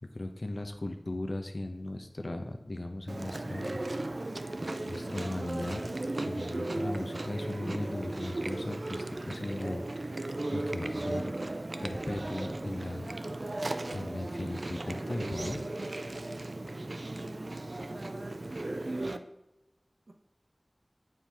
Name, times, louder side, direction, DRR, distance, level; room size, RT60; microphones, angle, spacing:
voice 1, 0.1-3.8 4.9-5.8 6.2-10.2 10.5-11.4 11.8-13.1 13.9-15.6, left 1 dB, 65° left, 5 dB, 0.7 m, -37 dB
Chewing mastication, 3.1-19.2, right 2 dB, 65° right, 0.4 m, -36 dB
voice 2, 17.0-18.4 18.7-19.3 20.1-20.2, right 2 dB, 80° right, 2 dB, 0.8 m, -48 dB
7.4 x 4.6 x 3.4 m, 0.95 s
wide cardioid pair, 50°, 0 cm